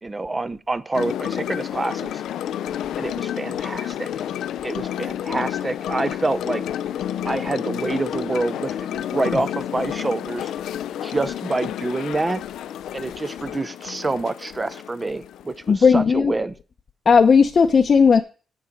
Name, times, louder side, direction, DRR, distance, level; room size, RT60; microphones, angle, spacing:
voice 1, 0.0-2.2 3.0-4.1 4.6-6.6 7.2-10.5 11.0-12.4 12.9-16.5, right 3 dB, 20° right, 13 dB, 0.5 m, -27 dB
sound 1, 0.9-15.7, left 10 dB, 90° left, 0.4 m, -30 dB
voice 2, 15.7-16.3 17.1-18.2, left 5 dB, 40° left, 4 dB, 0.7 m, -15 dB
8.3 x 7.1 x 5.2 m, 0.36 s
cardioid pair, 130°, 0 cm